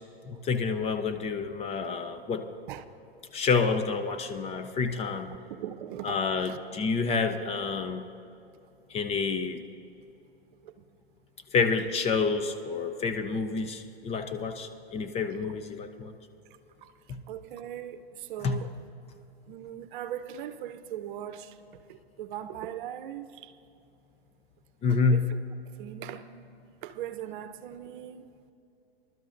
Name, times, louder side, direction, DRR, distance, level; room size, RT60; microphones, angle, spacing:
voice 1, 0.2-2.5 3.3-5.3 6.0-8.1 8.9-9.6 11.5-16.1 17.1-17.2 18.4-18.6 24.8-25.3, left 4 dB, 20° left, 8 dB, 0.5 m, -28 dB
voice 2, 5.3-6.2 6.5-6.6 10.6-10.7 16.8-16.9 17.3-18.7 19.5-23.5 24.9-25.2 25.8-26.3 26.8-28.3, right 11 dB, 55° right, 12 dB, 0.8 m, -40 dB
26.0 x 12.0 x 2.6 m, 2.7 s
hypercardioid pair, 120°, 31 cm